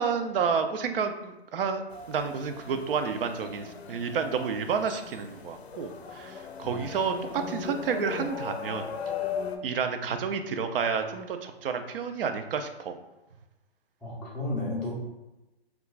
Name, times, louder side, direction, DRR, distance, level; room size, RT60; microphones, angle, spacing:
voice 1, 0.0-1.8 2.1-8.8 9.6-12.9, right 6 dB, 60° right, 7 dB, 0.4 m, -30 dB
sound 1, 1.9-9.6, left 6 dB, 80° left, 0.5 m, -38 dB
voice 2, 14.0-14.9, left 2 dB, 5° left, -8 dB, 0.4 m, -33 dB
2.3 x 2.1 x 3.9 m, 1.0 s
hypercardioid pair, 140°, 32 cm